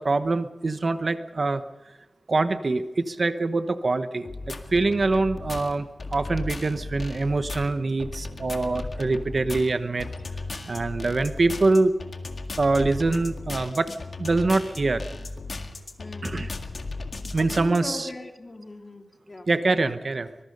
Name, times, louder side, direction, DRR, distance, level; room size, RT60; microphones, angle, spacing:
voice 1, 0.0-1.6 2.3-10.1 10.7-11.9 12.6-13.9 14.2-15.0 16.2-16.5 17.3-18.1 19.5-20.3, right 3 dB, 55° right, 10 dB, 1.0 m, -24 dB
sound 1, 4.2-17.8, left 3 dB, 65° left, 1.9 m, -36 dB
voice 2, 16.0-16.4 17.4-19.5, left 2 dB, 35° left, 4 dB, 2.3 m, -39 dB
23.5 x 21.0 x 5.4 m, 1.1 s
wide cardioid pair, 95°, 0 cm